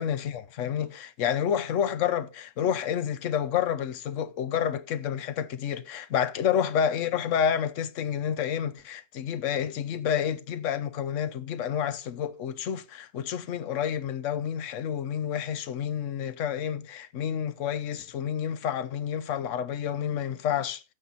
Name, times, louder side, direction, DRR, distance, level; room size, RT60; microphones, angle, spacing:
voice 1, 0.0-20.8, left 8 dB, 75° left, 1.1 m, -29 dB
15.5 x 5.6 x 4.0 m
omnidirectional pair, 1.3 m